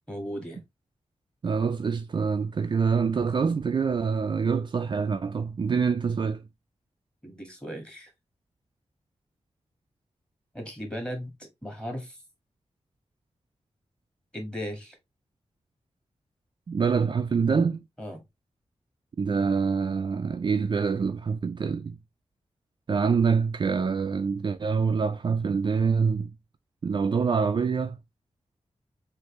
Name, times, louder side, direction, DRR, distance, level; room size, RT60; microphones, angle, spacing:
voice 1, 0.1-0.6 7.2-8.1 10.5-11.3 11.6-12.2 14.3-15.0 18.0-18.2, equal, 5° left, 1.8 m, -36 dB
voice 2, 1.4-6.4 16.7-17.8 19.2-22.0 22.9-26.3 26.8-28.0, right 5 dB, 45° right, 0.4 m, -25 dB
6.4 x 2.6 x 3.1 m
wide cardioid pair, 165°, 11 cm